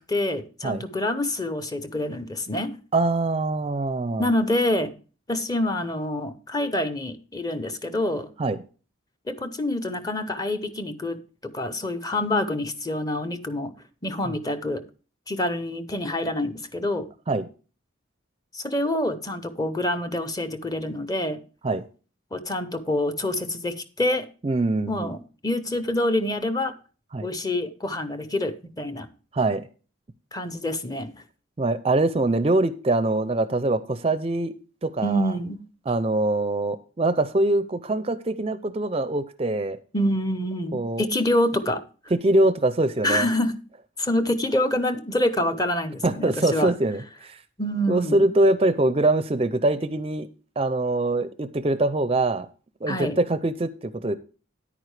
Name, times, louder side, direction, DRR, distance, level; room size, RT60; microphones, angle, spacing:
voice 1, 0.0-2.7 4.2-4.9 5.3-8.3 9.3-13.7 14.0-14.8 15.3-17.1 18.5-21.4 22.3-24.3 24.9-26.7 27.2-29.1 30.3-31.1 35.0-35.6 39.9-41.8 43.0-43.5 44.0-46.7 47.6-48.3 52.9-53.2, left 1 dB, 20° left, 0.6 m, -26 dB
voice 2, 2.9-4.3 8.4-8.6 14.3-14.4 17.3-17.5 21.6-21.8 24.4-25.1 27.1-27.3 29.3-29.7 31.6-34.5 34.8-35.3 35.9-39.8 40.7-41.1 42.2-43.3 46.0-47.4 47.9-50.3 50.6-52.5 52.8-54.2, right 2 dB, 30° right, 0.4 m, -23 dB
10.0 x 9.0 x 3.2 m
head